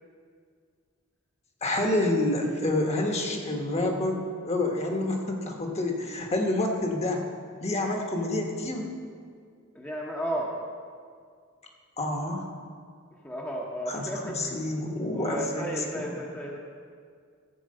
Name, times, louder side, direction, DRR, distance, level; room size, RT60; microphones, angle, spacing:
voice 1, 1.6-7.2 7.6-8.9 12.0-12.5 13.9-16.1, left 2 dB, 30° left, 2 dB, 1.2 m, -28 dB
voice 2, 9.7-10.5 13.2-14.5 15.1-16.6, equal, 10° left, -3 dB, 0.9 m, -33 dB
13.5 x 4.6 x 7.7 m, 2.1 s
head